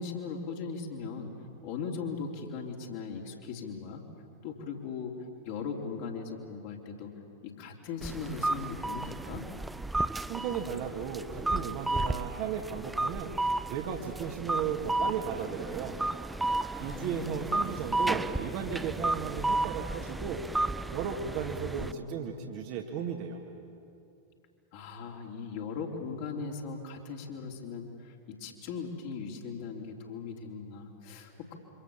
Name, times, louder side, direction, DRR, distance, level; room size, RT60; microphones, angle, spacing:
voice 1, 0.0-1.3 1.6-4.0 4.4-5.2 5.4-7.1 7.4-9.5 16.9-17.8 21.7-22.5 24.7-31.5, left 5 dB, 50° left, 0 dB, 3.5 m, -39 dB
sound 1, 8.0-21.9, right 2 dB, 5° right, 0.6 m, -33 dB
voice 2, 10.3-13.4 13.7-16.0 16.8-20.4 20.9-23.4, right 7 dB, 45° right, 2 dB, 2.0 m, -35 dB
27.5 x 25.0 x 7.3 m, 2.5 s
figure-of-eight pair, 90°, 0 cm